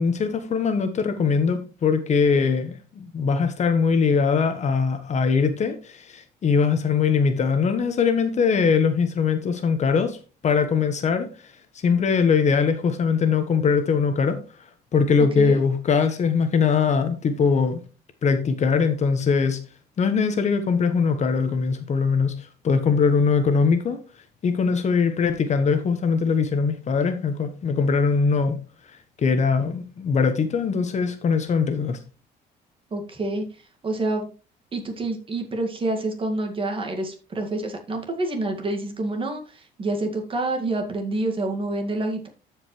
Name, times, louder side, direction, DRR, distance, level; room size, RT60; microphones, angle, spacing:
voice 1, 0.0-10.2 10.4-11.3 11.8-14.4 14.9-17.8 18.2-19.6 20.0-24.0 24.4-28.6 29.2-32.0, left 5 dB, 45° left, 1.2 m, -21 dB
voice 2, 32.9-33.4 33.8-34.3 34.7-42.3, right 2 dB, 30° right, 2.0 m, -27 dB
13.5 x 5.1 x 3.2 m
cardioid pair, 110°, 17 cm